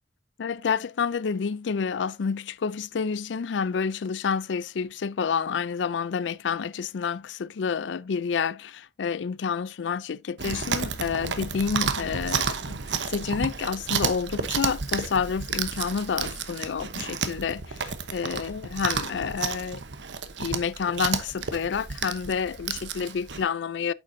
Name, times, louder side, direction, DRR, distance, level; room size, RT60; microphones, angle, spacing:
voice 1, 0.4-12.8 13.1-19.8 20.4-23.9, left 6 dB, 85° left, 0.4 m, -29 dB
Chewing mastication, 10.4-23.4, right 6 dB, 80° right, 1.0 m, -31 dB
9.1 x 7.2 x 2.7 m
head